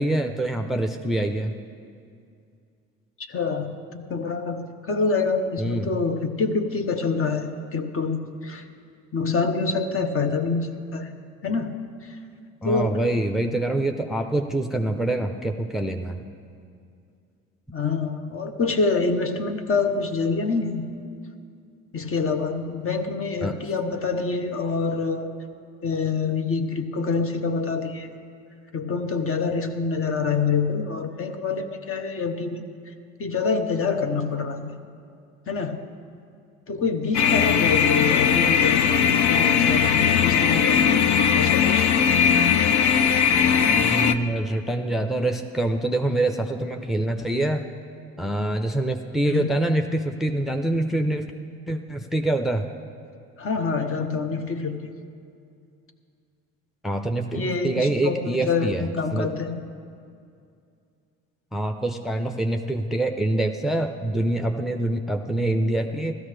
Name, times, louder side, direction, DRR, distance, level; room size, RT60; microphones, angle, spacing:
voice 1, 0.0-1.5 5.6-5.9 12.6-16.2 23.4-23.6 43.7-47.6 48.2-51.3 51.7-52.7 56.8-59.3 61.5-66.1, right 1 dB, ahead, 5 dB, 0.6 m, -25 dB
voice 2, 3.3-8.6 9.1-11.1 11.4-12.2 12.6-13.1 17.7-20.9 21.9-25.3 25.8-28.2 28.7-32.6 33.2-34.8 35.5-35.8 36.7-38.9 39.3-40.9 41.4-41.9 49.2-49.5 53.4-54.9 57.3-59.6, left 4 dB, 40° left, 6 dB, 1.0 m, -26 dB
sound 1, 37.1-44.1, left 7 dB, 60° left, 0.6 m, -19 dB
15.5 x 13.0 x 3.3 m, 2.4 s
supercardioid pair, 70°, 33 cm